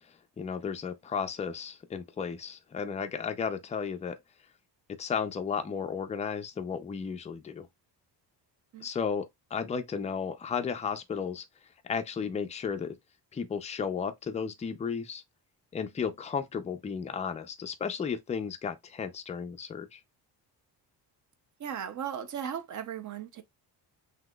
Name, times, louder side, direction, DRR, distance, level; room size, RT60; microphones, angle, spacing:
voice 1, 0.4-4.2 4.9-7.7 8.8-11.4 11.8-13.0 13.3-15.2 15.7-20.0, left 6 dB, 20° left, 0.3 m, -34 dB
voice 2, 21.6-23.4, right 8 dB, 45° right, 0.6 m, -36 dB
6.0 x 2.8 x 2.2 m
cardioid pair, 155°, 43 cm